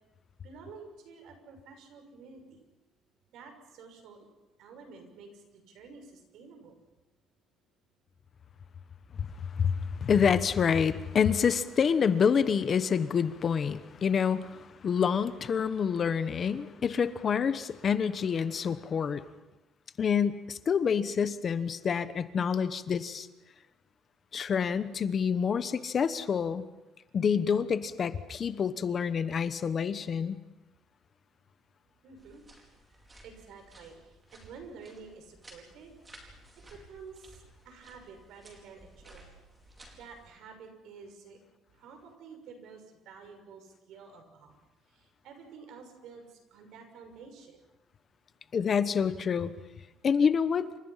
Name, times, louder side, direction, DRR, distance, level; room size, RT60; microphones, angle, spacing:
voice 1, 0.4-2.6 3.3-4.3 4.6-6.7 32.0-32.4 33.2-35.9 36.7-39.3 39.9-41.4 41.7-44.6 44.9-47.6, right 5 dB, 70° right, 6 dB, 6.2 m, -50 dB
voice 2, 9.5-19.2 20.0-23.3 24.3-26.6 27.1-30.4 48.5-49.5 50.0-50.7, left 7 dB, 35° left, 12 dB, 1.1 m, -27 dB
sound 1, 32.2-40.3, right 1 dB, 15° right, 4.8 m, -56 dB
29.0 x 26.5 x 5.8 m, 1.0 s
cardioid pair, 160°, 0 cm